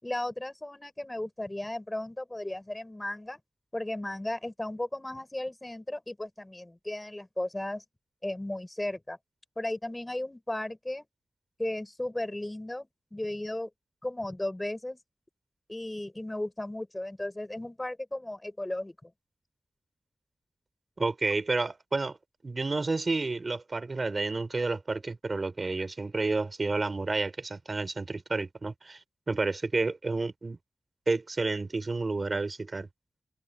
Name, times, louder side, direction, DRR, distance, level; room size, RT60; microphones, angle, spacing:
voice 1, 0.0-3.4 3.7-7.8 8.2-9.2 9.6-11.1 11.6-13.7 14.0-15.0 15.7-19.1, left 1 dB, 15° left, 6.3 m, -35 dB
voice 2, 21.0-22.2 22.4-29.0 29.3-30.6 31.1-32.9, right 3 dB, 40° right, 3.2 m, -30 dB
wide cardioid pair, 75°, 0 cm